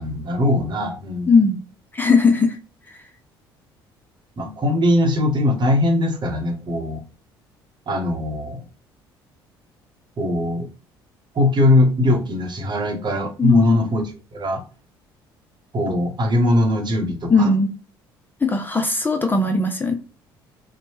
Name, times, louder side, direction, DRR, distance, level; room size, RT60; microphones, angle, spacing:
voice 1, 0.0-1.3 4.4-7.0 7.9-8.6 10.2-10.7 11.3-14.0 14.3-14.6 15.7-17.5, left 1 dB, 40° right, 3 dB, 0.9 m, -20 dB
voice 2, 1.3-1.6 1.9-2.6 13.4-13.8 17.3-17.7 18.4-20.0, left 3 dB, 15° left, 5 dB, 0.4 m, -18 dB
2.8 x 2.1 x 2.9 m, 0.36 s
hypercardioid pair, 55°, 12 cm